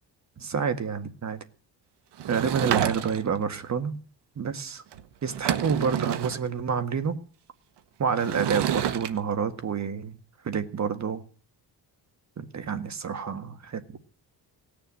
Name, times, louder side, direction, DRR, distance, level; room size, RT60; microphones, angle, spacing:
voice 1, 0.4-1.4 2.3-3.9 4.4-4.8 5.2-7.2 8.0-10.2 10.4-11.2 12.4-13.8, right 6 dB, 40° right, 9 dB, 1.8 m, -28 dB
Sliding door / Wood, 2.2-3.4 4.9-5.0 5.3-6.4 8.2-9.1, right 10 dB, 75° right, 1.3 m, -28 dB
18.0 x 6.9 x 9.9 m, 0.43 s
cardioid pair, 115°, 41 cm